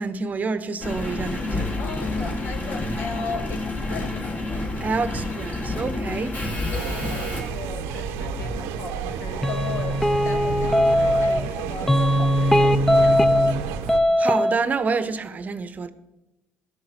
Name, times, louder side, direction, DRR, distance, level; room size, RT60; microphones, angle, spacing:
voice 1, 0.0-1.7 4.8-6.3 14.2-15.9, right 4 dB, 40° right, 0.8 m, -27 dB
Engine, 0.8-8.7 9.3-9.4, left 2 dB, 35° left, 2.5 m, -29 dB
voice 2, 1.8-3.6 3.9-4.2 6.7-13.8, left 5 dB, 65° left, 1.4 m, -37 dB
sound 1, 6.7-14.0, right 7 dB, 85° right, 0.7 m, -31 dB
sound 2, 9.4-11.5 11.9-13.6 13.9-14.5, equal, 5° left, 0.5 m, -19 dB
12.5 x 6.6 x 5.8 m
supercardioid pair, 80°, 4 cm